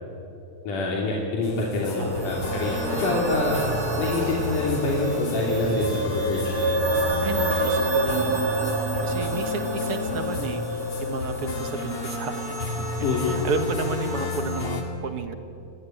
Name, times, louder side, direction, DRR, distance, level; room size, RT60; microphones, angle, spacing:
voice 1, 0.6-3.6 4.0-6.8 13.0-13.4, left 2 dB, 85° left, -3 dB, 4.5 m, -26 dB
sound 1, 1.4-14.8, left 3 dB, 60° left, 3.8 m, -31 dB
sound 2, 1.9-14.7, right 2 dB, 30° right, 2.9 m, -29 dB
voice 2, 2.0-2.5 3.3-3.5 7.2-15.3, right 5 dB, 55° right, 8 dB, 2.0 m, -33 dB
26.0 x 22.0 x 9.1 m, 2.8 s
omnidirectional pair, 3.6 m